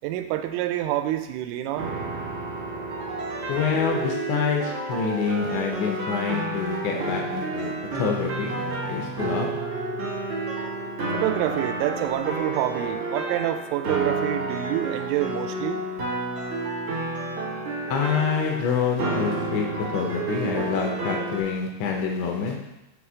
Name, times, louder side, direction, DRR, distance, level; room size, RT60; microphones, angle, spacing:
voice 1, 0.0-1.9 11.1-15.8, right 13 dB, 90° right, 8 dB, 3.1 m, -27 dB
sound 1, 1.8-21.4, right 3 dB, 70° right, 1.3 m, -30 dB
voice 2, 3.5-9.5 17.9-19.7 19.9-22.6, left 6 dB, 75° left, 1 dB, 2.9 m, -27 dB
7.9 x 3.2 x 6.1 m, 0.92 s
omnidirectional pair, 5.5 m